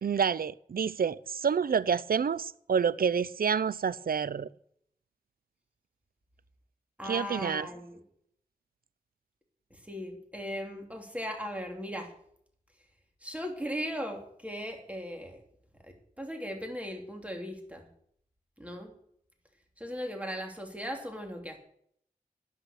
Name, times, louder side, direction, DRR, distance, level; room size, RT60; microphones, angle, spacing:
voice 1, 0.0-4.5 7.0-7.7, right 6 dB, 80° right, 0.5 m, -28 dB
voice 2, 7.0-8.0 9.7-12.1 13.2-15.4 15.8-17.9 18.6-18.9 19.8-21.6, equal, 10° right, 2.9 m, -38 dB
11.0 x 10.0 x 6.5 m
wide cardioid pair, 50°, 15 cm